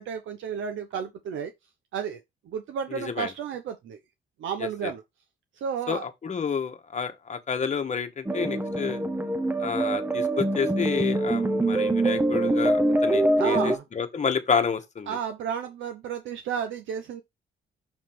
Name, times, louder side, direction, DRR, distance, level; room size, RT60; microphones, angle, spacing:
voice 1, 0.0-1.5 1.9-2.2 2.5-4.0 4.4-5.0 5.6-6.0 13.4-13.8 15.1-17.2, right 7 dB, 75° right, 0.9 m, -32 dB
voice 2, 2.9-3.3 4.6-4.9 5.9-9.0 9.6-15.2, left 6 dB, 35° left, 1.3 m, -29 dB
sound 1, 8.3-13.8, right 1 dB, 10° right, 0.8 m, -24 dB
6.6 x 3.1 x 5.9 m
cardioid pair, 90°, 20 cm